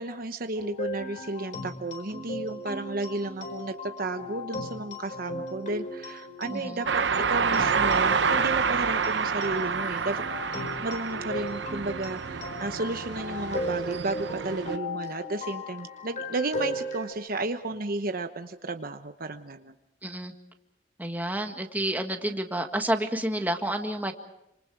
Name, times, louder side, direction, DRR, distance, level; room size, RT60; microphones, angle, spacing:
voice 1, 0.0-6.9 7.3-10.2 10.5-19.7, right 2 dB, 55° right, 7 dB, 1.0 m, -33 dB
sound 1, 0.6-17.1, left 1 dB, 45° left, 4.4 m, -37 dB
voice 2, 6.5-6.8 20.0-20.3 21.0-24.1, right 1 dB, 10° right, 4 dB, 1.8 m, -29 dB
sound 2, 6.9-14.8, right 5 dB, 80° right, 0.8 m, -28 dB
28.0 x 26.5 x 4.7 m, 0.85 s
head